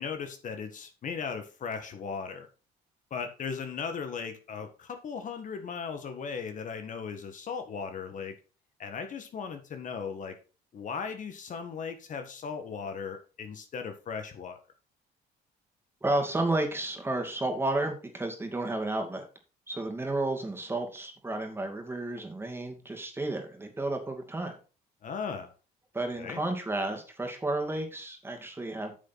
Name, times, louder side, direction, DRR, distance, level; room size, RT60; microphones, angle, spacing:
voice 1, 0.0-2.5 3.1-8.4 8.8-10.4 10.7-14.6 25.0-25.5 26.2-26.4, left 6 dB, 50° left, 7 dB, 1.8 m, -37 dB
voice 2, 16.0-19.2 19.7-24.5 25.9-28.9, right 2 dB, 15° right, 3 dB, 2.5 m, -32 dB
8.9 x 7.2 x 4.2 m, 0.34 s
cardioid pair, 110°, 17 cm